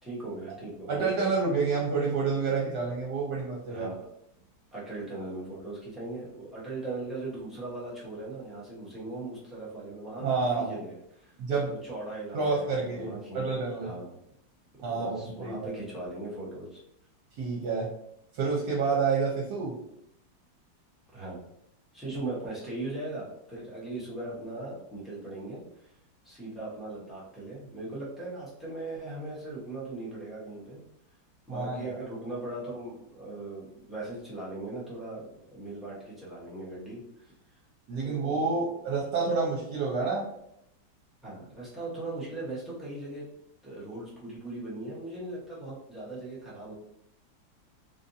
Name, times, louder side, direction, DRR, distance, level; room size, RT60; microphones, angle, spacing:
voice 1, 0.0-1.1 3.7-4.0 4.7-11.4 11.6-13.4 13.8-14.2 15.0-16.8 21.1-21.4 21.9-25.9 26.2-30.8 31.5-37.3 38.0-38.8 41.2-43.2 43.6-46.7, right 2 dB, ahead, -9 dB, 0.6 m, -39 dB
voice 2, 0.9-3.9 10.2-10.8 11.4-11.7 12.3-13.9 14.8-15.7 17.4-17.9 18.3-19.8 31.5-32.0 37.9-40.2, right 4 dB, 65° right, -3 dB, 1.2 m, -29 dB
3.6 x 2.5 x 2.6 m, 0.77 s
omnidirectional pair, 2.1 m